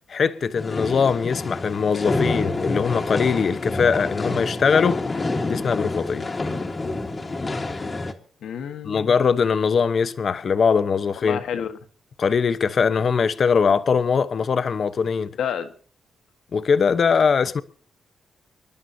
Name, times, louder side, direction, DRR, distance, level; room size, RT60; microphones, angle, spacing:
voice 1, 0.1-5.0 5.5-6.2 8.8-11.4 12.2-15.3 16.5-17.6, left 6 dB, 50° left, 1.0 m, -21 dB
sound 1, 0.6-8.1, left 2 dB, 25° left, 1.6 m, -27 dB
voice 2, 8.4-9.3 11.2-11.8 15.4-15.7, left 8 dB, 80° left, 1.6 m, -30 dB
27.0 x 11.0 x 2.8 m
cardioid pair, 100°, 0 cm